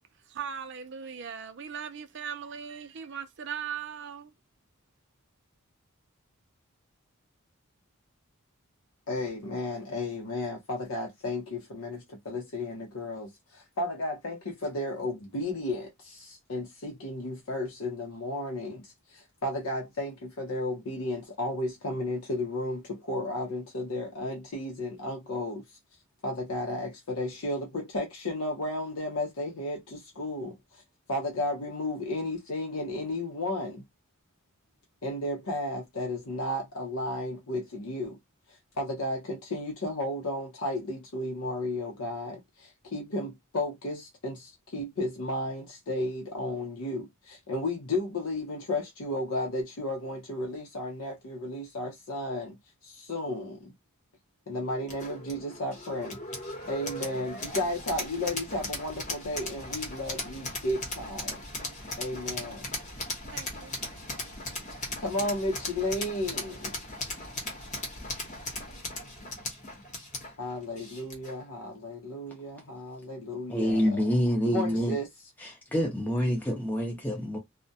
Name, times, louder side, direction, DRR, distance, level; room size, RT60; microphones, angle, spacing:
voice 1, 0.3-4.3 63.3-63.8, right 7 dB, 55° right, 0.4 m, -39 dB
voice 2, 9.1-25.8 26.2-30.8 31.1-33.8 35.0-38.2 38.5-52.6 52.8-53.7 54.5-56.2 56.7-61.4 62.0-62.9 65.0-66.8 70.4-73.9 74.5-75.1, left 1 dB, 80° left, 0.6 m, -33 dB
sound 1, 54.9-71.4, left 2 dB, 35° left, 0.9 m, -38 dB
voice 3, 73.5-75.0 75.4-77.4, equal, 10° left, 0.6 m, -27 dB
2.3 x 2.1 x 2.6 m
head